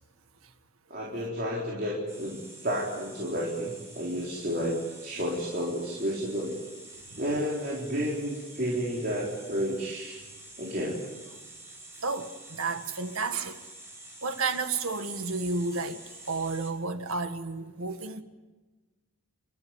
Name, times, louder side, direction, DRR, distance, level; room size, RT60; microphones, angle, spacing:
voice 1, 0.9-2.4 2.6-6.5 7.2-10.2 10.6-11.0, equal, 45° right, 4.0 m, -31 dB
sound 1, 2.1-16.7, right 2 dB, 15° right, 6.8 m, -48 dB
voice 2, 12.0-13.6 14.2-16.0 16.3-18.2, right 3 dB, 80° right, 1.6 m, -31 dB
29.5 x 14.0 x 9.7 m
head